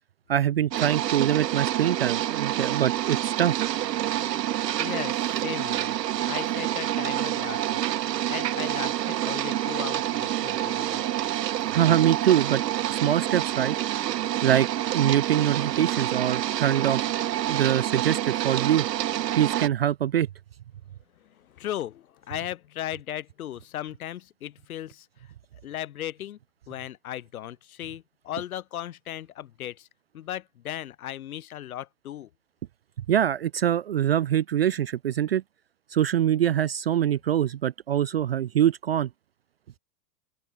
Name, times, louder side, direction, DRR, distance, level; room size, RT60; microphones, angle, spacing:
voice 1, 0.3-3.5 11.7-12.6 12.9-13.8 14.4-14.7 14.9-17.0 17.5-18.9 19.4-20.3 33.1-35.4 35.9-39.1, right 10 dB, 40° right, 0.5 m, -24 dB
sound 1, 0.7-19.7, right 12 dB, 70° right, 1.5 m, -27 dB
voice 2, 4.8-6.0 6.3-7.8 8.3-11.0 21.2-25.1 25.6-26.4 26.7-29.9 30.1-32.3, left 12 dB, 55° left, 7.5 m, -36 dB
open air
supercardioid pair, 180°, 49 cm